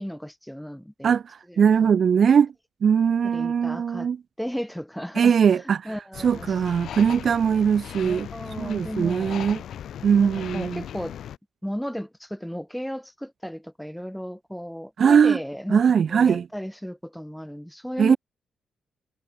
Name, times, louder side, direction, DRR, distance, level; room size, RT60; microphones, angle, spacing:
voice 1, 0.0-1.2 1.5-1.9 3.2-4.1 4.4-5.4 5.8-6.6 8.0-9.4 10.2-11.2 11.6-15.8 16.1-18.2, equal, ahead, 0.9 m, -34 dB
voice 2, 1.0-2.5 2.8-4.2 5.2-5.9 6.2-8.3 8.6-9.6 10.0-10.8 15.0-15.4 15.7-16.5 18.0-18.2, right 7 dB, 40° right, 0.4 m, -20 dB
sound 1, 6.1-11.4, left 10 dB, 60° left, 0.8 m, -38 dB
wide cardioid pair, 175°, 0 cm